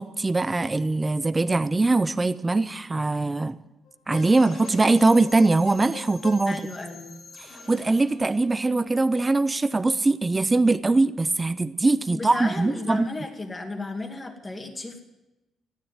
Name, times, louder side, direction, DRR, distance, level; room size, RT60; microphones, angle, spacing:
voice 1, 0.0-3.6 4.1-6.6 7.7-13.1, right 3 dB, 15° right, 14 dB, 0.5 m, -22 dB
sound 1, 3.9-7.4 8.9-9.0, left 5 dB, 75° left, 1.8 m, -43 dB
sound 2, 4.2-10.0, left 3 dB, 55° left, 3.0 m, -48 dB
voice 2, 6.5-7.1 12.1-15.0, left 2 dB, 20° left, 3 dB, 2.4 m, -34 dB
15.0 x 10.5 x 9.3 m, 1.0 s
cardioid pair, 140°, 0 cm